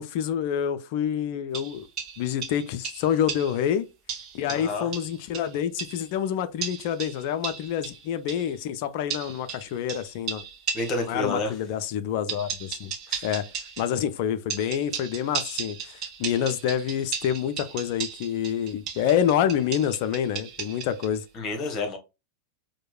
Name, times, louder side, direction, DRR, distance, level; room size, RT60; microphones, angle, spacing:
voice 1, 0.0-1.9 2.2-3.9 4.3-10.4 11.1-12.9 13.2-13.5 13.8-21.3, left 9 dB, 45° left, 0.4 m, -27 dB
sound 1, 1.5-3.6 4.1-6.1 6.6-8.5 9.1-11.1 12.3-14.0 14.5-21.1, right 7 dB, 35° right, 0.6 m, -36 dB
voice 2, 4.5-4.9 10.7-11.5 13.1-13.2 21.3-22.0, left 2 dB, 30° left, 1.2 m, -29 dB
4.5 x 2.2 x 2.3 m
figure-of-eight pair, 90°, 0 cm